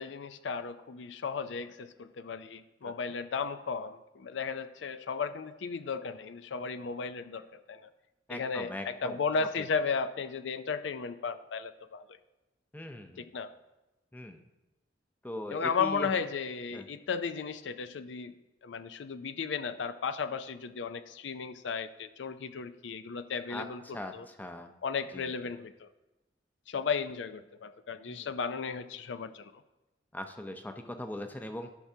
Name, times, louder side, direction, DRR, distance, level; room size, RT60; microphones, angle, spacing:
voice 1, 0.0-7.9 8.3-12.0 13.2-13.5 15.5-18.3 18.6-24.3 24.8-25.9 26.7-29.5, left 5 dB, 90° left, 11 dB, 0.5 m, -35 dB
voice 2, 8.3-9.2 12.7-13.3 14.1-14.4 15.2-16.1 16.7-16.9 23.5-23.7 23.9-24.7 25.1-25.5 28.1-28.3 30.1-31.7, left 1 dB, 10° left, 6 dB, 0.6 m, -40 dB
13.5 x 5.9 x 2.8 m, 1.0 s
head